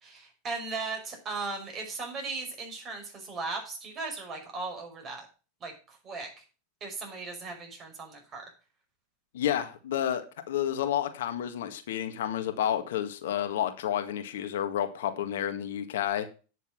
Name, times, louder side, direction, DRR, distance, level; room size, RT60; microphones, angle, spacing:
voice 1, 0.0-5.3 5.6-6.3 6.8-8.4, right 3 dB, 35° right, 5.5 m, -37 dB
voice 2, 9.3-10.2 10.5-16.3, left 10 dB, 75° left, 1.7 m, -30 dB
9.7 x 6.6 x 6.4 m
hypercardioid pair, 105°, 0 cm